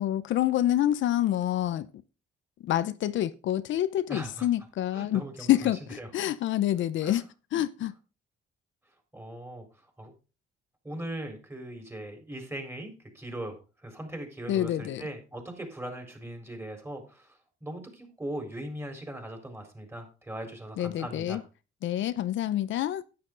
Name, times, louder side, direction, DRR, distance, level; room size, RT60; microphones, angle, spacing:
voice 1, 0.0-1.9 2.6-7.2 7.5-7.9 14.5-15.1 20.8-21.4 21.8-23.0, left 12 dB, 75° left, 0.7 m, -27 dB
voice 2, 4.1-4.5 4.9-5.5 6.0-6.1 7.0-7.2 9.1-9.6 10.0-10.1 10.8-17.3 17.6-21.4, right 1 dB, 10° right, 4.2 m, -39 dB
10.5 x 9.7 x 3.9 m
cardioid pair, 90°, 20 cm